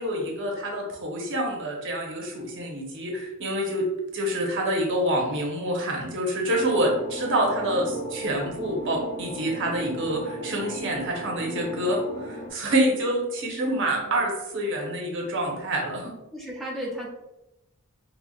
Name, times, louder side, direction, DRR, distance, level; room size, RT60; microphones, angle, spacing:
voice 1, 0.0-3.9 4.1-16.1, right 1 dB, 60° right, 0 dB, 0.9 m, -27 dB
sound 1, 6.5-12.5, right 1 dB, 25° left, 0.9 m, -37 dB
voice 2, 13.7-14.3 16.3-17.1, equal, ahead, -4 dB, 0.6 m, -35 dB
4.9 x 2.3 x 2.3 m, 0.92 s
head